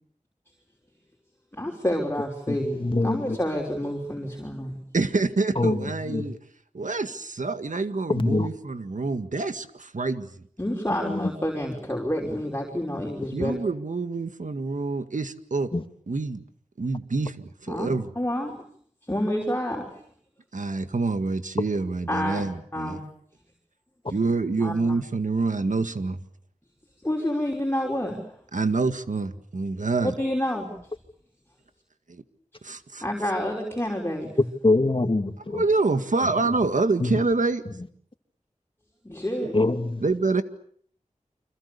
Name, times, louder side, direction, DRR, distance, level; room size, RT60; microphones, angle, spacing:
voice 1, 1.5-4.8 10.6-13.6 17.7-17.9 18.2-18.5 19.0-19.9 22.1-22.5 22.7-23.0 24.6-24.8 27.0-28.2 30.0-30.7 33.0-34.3 39.0-39.6, equal, 15° left, 5.6 m, -28 dB
voice 2, 2.5-3.4 5.6-6.4 8.1-8.5 11.0-11.3 15.7-15.8 34.6-35.6 37.0-37.2 39.5-40.0, left 2 dB, 40° left, 2.4 m, -24 dB
voice 3, 4.9-6.4 6.7-10.3 13.3-15.7 16.1-16.4 16.8-18.1 20.5-23.0 24.1-26.2 28.5-30.1 32.1-32.2 32.6-33.0 35.5-37.6 39.4-39.5 40.0-40.4, right 3 dB, 75° right, 1.9 m, -26 dB
30.0 x 26.0 x 6.9 m
wide cardioid pair, 60°, 13 cm